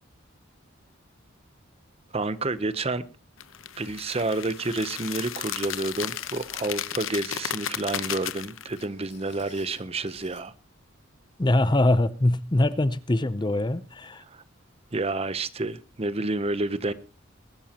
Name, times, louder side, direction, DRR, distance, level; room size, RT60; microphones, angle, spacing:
voice 1, 2.1-3.1 3.8-10.5 14.3-14.4 14.9-16.9, right 2 dB, 30° right, 0.8 m, -29 dB
sound 1, 3.4-8.8, left 10 dB, 75° left, 0.9 m, -34 dB
sound 2, 3.9-4.0 4.7-4.8 5.8-7.1 8.7-10.5 10.7-10.9 11.3-11.4, left 5 dB, 55° left, 6.0 m, -54 dB
voice 2, 11.4-14.2, left 1 dB, 20° left, 0.6 m, -23 dB
22.0 x 12.5 x 2.9 m
head